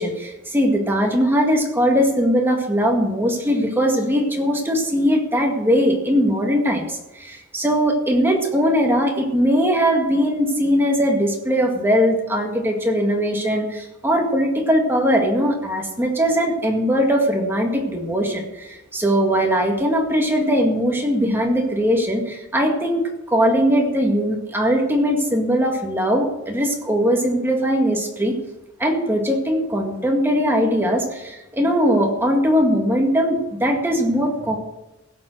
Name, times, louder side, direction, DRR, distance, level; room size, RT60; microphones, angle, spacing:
voice 1, 0.0-28.4 28.8-34.6, equal, 10° right, 1 dB, 2.0 m, -20 dB
16.5 x 7.5 x 6.4 m, 0.99 s
head